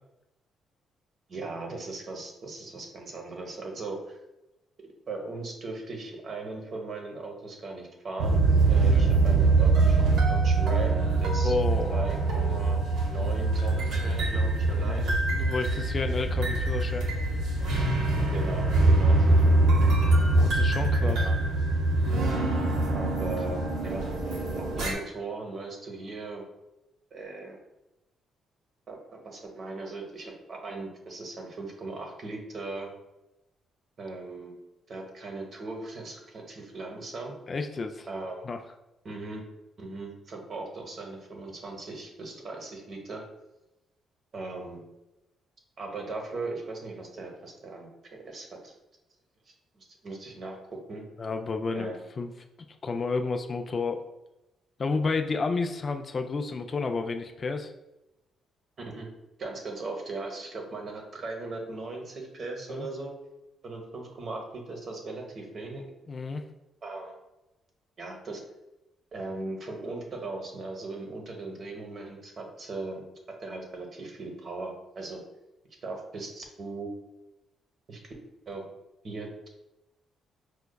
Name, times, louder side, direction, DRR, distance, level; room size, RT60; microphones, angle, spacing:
voice 1, 1.3-4.2 5.1-10.0 10.3-11.6 11.9-12.8 13.1-15.1 18.3-19.5 19.8-19.9 21.0-21.3 22.9-24.0 24.6-26.4 27.1-27.6 28.9-32.9 34.0-34.5 34.9-37.3 38.1-38.5 39.0-39.4 39.8-43.2 44.3-44.8 45.8-48.7 49.7-50.6 50.9-51.0 51.7-52.0 58.8-59.1 59.4-63.1 63.6-65.8 66.8-67.2 68.0-68.4 69.1-73.0 73.4-75.2 75.8-76.9 77.9-78.1 78.5-78.6 79.0-79.5, right 3 dB, 50° right, 2 dB, 0.8 m, -38 dB
sound 1, 8.2-24.9, right 2 dB, 80° right, 0.7 m, -23 dB
voice 2, 8.8-9.2 11.4-12.0 14.7-17.1 20.3-21.2 37.5-38.1 38.4-38.6 51.2-52.3 52.8-54.0 54.8-57.7 62.7-62.9 66.1-66.4, left 4 dB, 40° left, 5 dB, 0.3 m, -31 dB
5.0 x 2.3 x 2.2 m, 0.95 s
cardioid pair, 90°, 0 cm